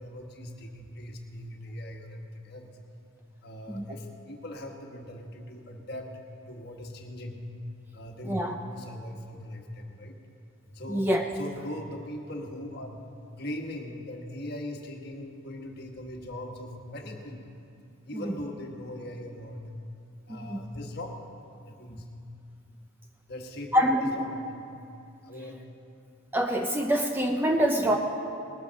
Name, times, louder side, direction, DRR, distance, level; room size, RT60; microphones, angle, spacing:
voice 1, 0.0-2.7 3.4-7.4 7.9-10.2 10.7-13.1 13.4-17.5 18.0-19.6 20.3-21.2 21.6-22.0 23.3-24.7 25.2-25.6 27.9-28.0, left 1 dB, 50° left, 2 dB, 1.4 m, -40 dB
voice 2, 10.9-11.3 18.1-18.3 20.3-20.7 23.7-24.2 26.3-28.0, equal, 10° right, 3 dB, 0.5 m, -25 dB
19.5 x 8.2 x 6.3 m, 2.6 s
head